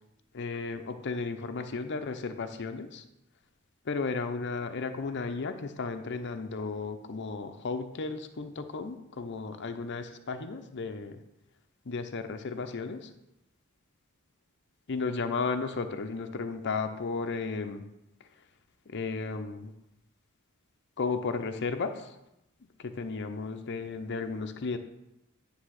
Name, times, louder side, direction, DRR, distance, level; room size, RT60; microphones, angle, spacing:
voice 1, 0.3-3.0 3.8-11.2 11.8-13.1 14.9-17.8 18.9-19.7 21.0-22.1 22.8-24.8, left 4 dB, 55° left, 7 dB, 0.6 m, -34 dB
9.5 x 3.4 x 6.3 m, 0.88 s
head